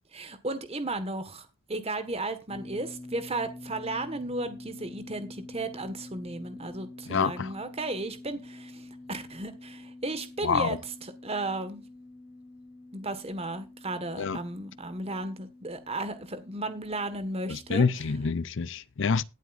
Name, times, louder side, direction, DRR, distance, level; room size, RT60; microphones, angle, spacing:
voice 1, 0.1-11.8 12.9-17.9, right 2 dB, 25° right, 1.6 m, -34 dB
sound 1, 2.5-18.3, left 2 dB, 40° left, 3.7 m, -47 dB
voice 2, 7.1-7.5 10.4-10.8 14.2-14.4 17.5-19.2, left 5 dB, 55° left, 0.6 m, -27 dB
21.0 x 8.0 x 2.6 m
head